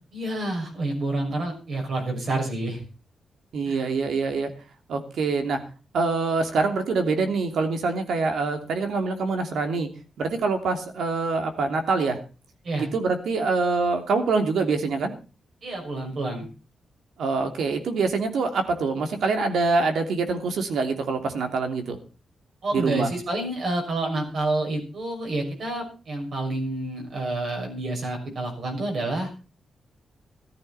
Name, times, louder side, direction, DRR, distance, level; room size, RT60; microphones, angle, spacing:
voice 1, 0.1-2.8 3.7-3.8 12.6-12.9 15.6-16.5 22.6-29.3, right 2 dB, 50° right, 1 dB, 6.3 m, -28 dB
voice 2, 3.5-4.5 4.9-5.6 5.9-9.9 10.2-12.2 12.7-15.1 17.2-22.0 22.7-23.1, right 4 dB, 75° right, 5 dB, 3.0 m, -25 dB
14.5 x 14.0 x 4.3 m, 0.34 s
wide cardioid pair, 170°, 0 cm